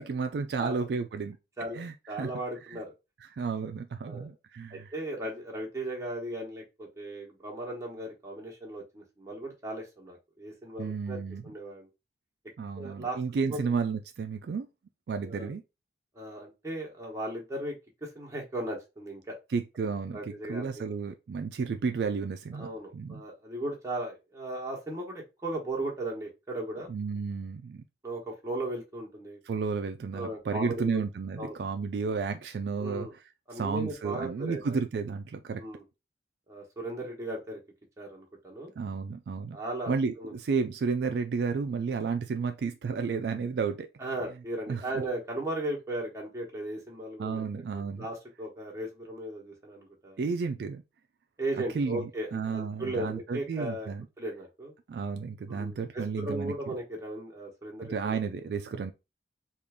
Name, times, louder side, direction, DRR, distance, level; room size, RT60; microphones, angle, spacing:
voice 1, 0.0-1.4 1.7-2.3 2.7-2.8 3.3-4.9 10.8-11.5 12.6-14.7 15.1-15.6 19.5-20.2 20.5-23.2 26.9-27.8 29.5-33.1 33.5-35.6 38.8-39.6 39.9-43.9 44.7-44.9 47.2-48.1 50.2-50.8 51.7-54.1 54.9-56.7 57.8-58.9, right 5 dB, 65° right, 0.3 m, -32 dB
voice 2, 1.6-2.9 4.0-4.3 4.7-11.9 12.8-13.2 13.5-13.6 15.2-15.5 16.1-17.7 18.0-19.4 20.1-20.9 22.5-26.9 28.0-29.4 30.1-31.0 31.4-31.6 32.8-33.1 33.5-34.8 35.6-35.8 36.5-37.6 38.0-38.7 39.5-40.3 44.0-47.5 47.7-50.2 51.4-54.7 55.5-58.2, right 1 dB, 15° right, 1.1 m, -37 dB
3.6 x 2.4 x 3.4 m
head